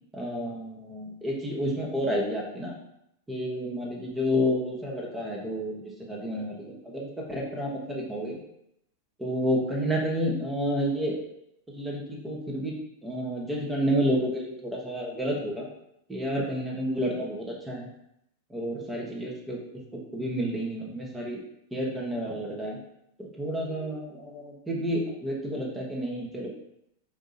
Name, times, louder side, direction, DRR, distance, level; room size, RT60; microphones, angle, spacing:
voice 1, 0.1-2.8 3.3-8.4 9.2-11.2 11.7-12.7 13.0-15.7 16.1-17.9 18.5-19.6 20.1-21.4 21.7-22.8 23.2-26.5, equal, 10° right, -2 dB, 1.2 m, -30 dB
3.9 x 2.7 x 4.1 m, 0.80 s
hypercardioid pair, 95°, 0 cm